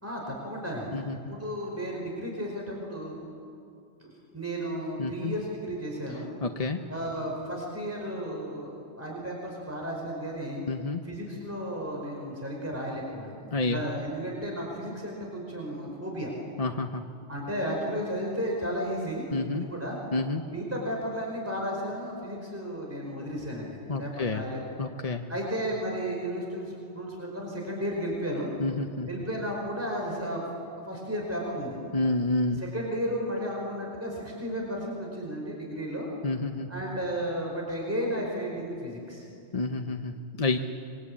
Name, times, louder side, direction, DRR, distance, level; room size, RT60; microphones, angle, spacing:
voice 1, 0.0-3.1 4.0-6.3 6.9-10.6 11.0-13.4 13.7-16.3 17.3-19.3 19.5-20.0 20.4-24.6 25.3-28.5 29.1-30.4 30.9-31.8 32.6-36.1 36.7-39.2, equal, 10° right, -1 dB, 5.0 m, -33 dB
voice 2, 0.9-1.4 5.0-5.3 6.4-6.8 10.7-11.0 13.5-13.8 16.6-17.0 19.3-19.6 20.1-20.4 23.9-24.4 24.8-25.2 28.6-29.1 31.9-32.6 36.2-36.7 39.5-40.6, left 3 dB, 35° left, 5 dB, 0.9 m, -29 dB
26.5 x 23.0 x 8.7 m, 2.6 s
omnidirectional pair, 1.2 m